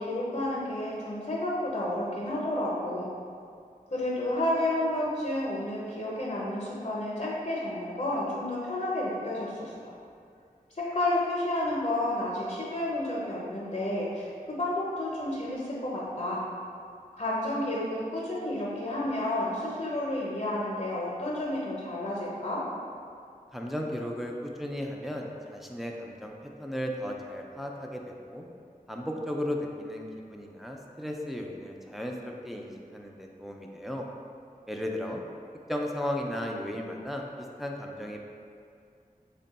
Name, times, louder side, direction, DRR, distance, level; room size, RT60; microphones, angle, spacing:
voice 1, 0.0-3.1 3.9-9.9 10.8-16.5 17.2-22.6, left 1 dB, 50° left, -6 dB, 0.6 m, -31 dB
voice 2, 23.5-28.5 28.9-34.0 34.7-35.2 35.7-38.2, left 1 dB, ahead, 0 dB, 0.3 m, -35 dB
3.3 x 2.2 x 4.0 m, 2.4 s
wide cardioid pair, 50°, 15 cm